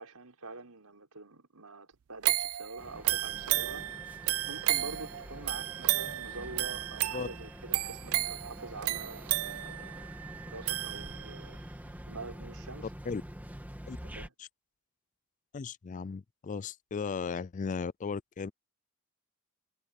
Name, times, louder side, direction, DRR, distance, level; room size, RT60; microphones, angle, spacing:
voice 1, 0.0-3.9 4.1-11.6 12.1-12.9 14.0-14.3, right 3 dB, 90° right, 5.1 m, -46 dB
sound 1, 2.2-11.5 12.0-12.1, right 17 dB, 70° right, 0.4 m, -33 dB
sound 2, 2.8-14.3, equal, 10° right, 2.0 m, -46 dB
voice 2, 15.5-18.5, left 5 dB, 35° left, 0.3 m, -36 dB
head